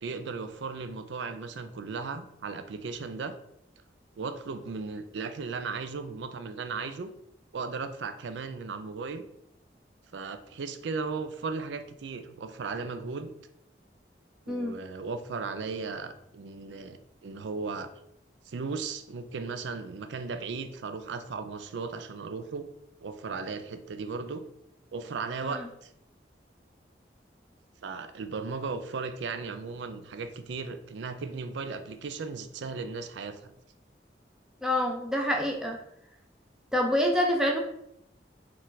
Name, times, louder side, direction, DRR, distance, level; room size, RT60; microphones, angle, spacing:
voice 1, 0.0-3.4 4.2-7.1 7.5-9.2 10.1-13.3 14.5-17.9 18.5-22.7 23.0-24.4 24.9-25.9 27.8-33.5, right 4 dB, 85° right, 9 dB, 0.4 m, -36 dB
voice 2, 34.6-35.8 36.7-37.6, left 1 dB, 5° right, 0 dB, 0.4 m, -26 dB
4.3 x 2.4 x 3.9 m, 0.79 s
head